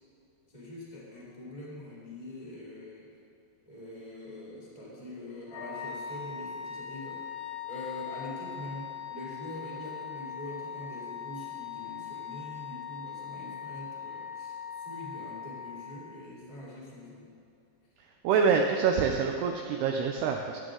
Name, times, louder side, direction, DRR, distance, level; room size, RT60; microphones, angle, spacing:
voice 1, 0.5-3.1 3.6-7.2 7.7-17.3 18.2-18.4, left 1 dB, 15° left, -5 dB, 1.1 m, -44 dB
Wind instrument woodwind instrument, 5.5-16.3, left 8 dB, 70° left, 2.5 m, -40 dB
voice 2, 18.2-20.6, right 6 dB, 90° right, 3 dB, 2.3 m, -26 dB
15.0 x 9.5 x 3.7 m, 2.6 s
omnidirectional pair, 5.4 m